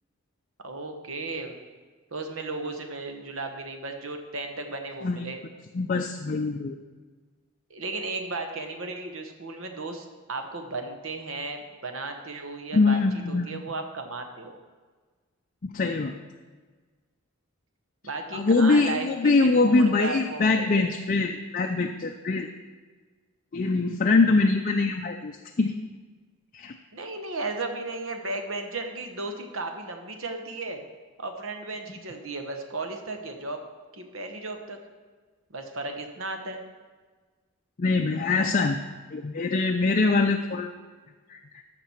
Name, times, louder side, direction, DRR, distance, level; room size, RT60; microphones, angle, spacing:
voice 1, 0.6-1.6 2.1-5.4 7.7-13.0 13.3-14.6 18.0-20.9 26.9-30.8 31.2-33.6 33.9-34.8 35.5-36.6, right 3 dB, 65° right, 5 dB, 1.2 m, -35 dB
voice 2, 5.7-6.8 12.7-13.6 15.6-16.1 18.3-22.5 23.5-25.3 25.6-25.7 26.5-26.7 37.8-38.8 39.1-40.7 41.3-41.6, left 3 dB, 40° left, 4 dB, 0.4 m, -23 dB
14.0 x 6.0 x 4.4 m, 1.4 s
head